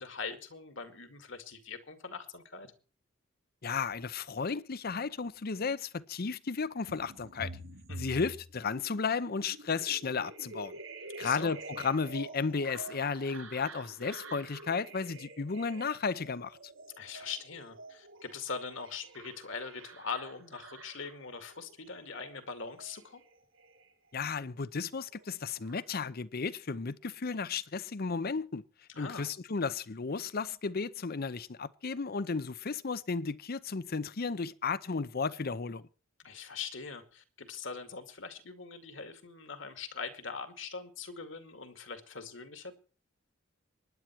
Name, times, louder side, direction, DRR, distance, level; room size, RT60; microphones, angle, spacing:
voice 1, 0.0-2.7 7.9-8.3 11.2-11.6 17.0-23.2 28.9-29.3 36.2-42.7, left 5 dB, 65° left, 2.3 m, -42 dB
voice 2, 3.6-7.5 8.0-10.7 11.2-16.6 24.1-28.6 29.0-35.8, left 5 dB, 50° left, 0.7 m, -34 dB
sound 1, 6.9-24.6 24.9-25.8, right 2 dB, 80° right, 5.7 m, -48 dB
24.0 x 10.5 x 4.6 m
head